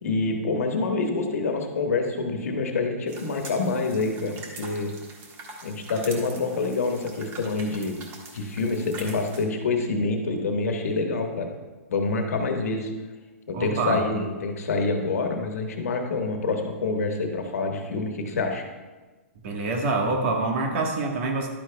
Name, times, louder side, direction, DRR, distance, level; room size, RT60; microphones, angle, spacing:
voice 1, 0.0-4.9 5.6-8.0 8.3-11.5 11.9-12.9 13.5-18.6, left 3 dB, 80° left, 3 dB, 1.4 m, -27 dB
sound 1, 3.1-9.4, right 3 dB, 30° right, 1.4 m, -43 dB
voice 2, 13.5-14.0 19.4-21.5, right 3 dB, 55° right, 2 dB, 1.3 m, -26 dB
11.5 x 8.8 x 2.3 m, 1.2 s
hypercardioid pair, 140°, 8 cm